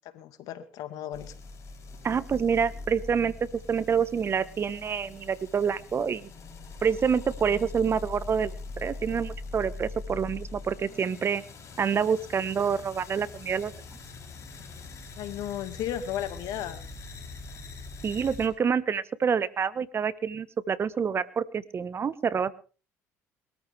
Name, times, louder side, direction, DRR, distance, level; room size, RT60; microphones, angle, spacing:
voice 1, 0.1-1.3 15.2-16.9, left 11 dB, 70° left, 10 dB, 2.1 m, -34 dB
sound 1, 1.1-18.5, left 3 dB, 50° left, 5.2 m, -42 dB
voice 2, 2.0-3.3 3.7-6.3 6.8-11.4 11.8-13.7 18.0-22.5, right 6 dB, 40° right, 17 dB, 1.2 m, -27 dB
21.5 x 14.0 x 3.5 m, 0.36 s
supercardioid pair, 70°, 6 cm